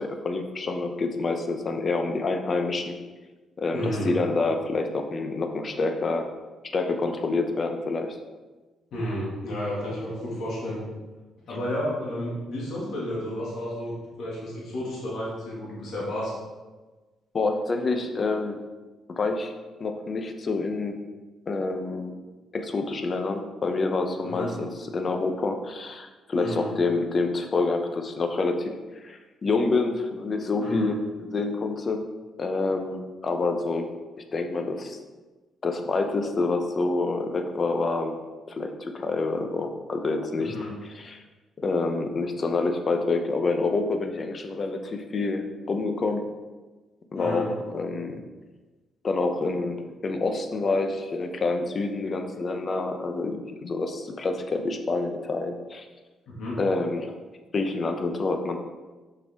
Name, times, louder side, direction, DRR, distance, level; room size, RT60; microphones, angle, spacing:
voice 1, 0.0-2.9 3.6-6.3 6.7-8.2 17.3-18.6 19.1-19.5 19.8-21.0 21.5-22.1 22.5-28.8 29.0-32.0 32.4-33.9 34.3-35.0 35.6-38.2 38.5-40.5 40.9-41.2 41.6-46.3 47.1-48.2 49.0-55.8 56.6-57.2 57.5-58.6, left 3 dB, 40° left, 6 dB, 0.8 m, -27 dB
voice 2, 3.7-4.1 8.9-10.8 11.5-16.3 24.2-24.6 26.3-26.7 30.5-30.9 40.4-40.7 47.1-47.5 56.3-56.6, left 1 dB, 70° left, -6 dB, 2.0 m, -32 dB
6.1 x 5.5 x 3.6 m, 1.3 s
cardioid pair, 90°, 0 cm